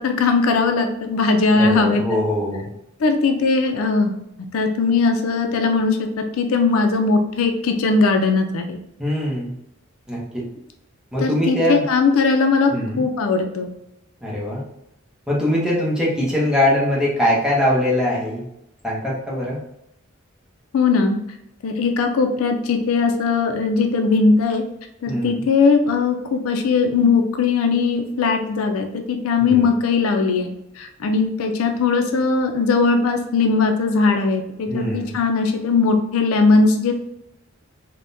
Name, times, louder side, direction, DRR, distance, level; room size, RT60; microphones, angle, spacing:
voice 1, 0.0-2.2 3.0-4.1 4.5-8.8 11.2-13.7 20.7-21.2 21.6-24.6 25.0-30.5 30.8-36.9, left 4 dB, 80° left, 5 dB, 0.4 m, -19 dB
voice 2, 1.5-2.7 9.0-9.5 10.1-10.4 11.1-11.8 12.7-13.0 14.2-14.6 15.3-18.4 18.8-19.6 25.1-25.4 29.4-29.7 34.7-35.2, left 1 dB, 5° right, -5 dB, 0.8 m, -22 dB
3.4 x 2.1 x 2.5 m, 0.81 s
head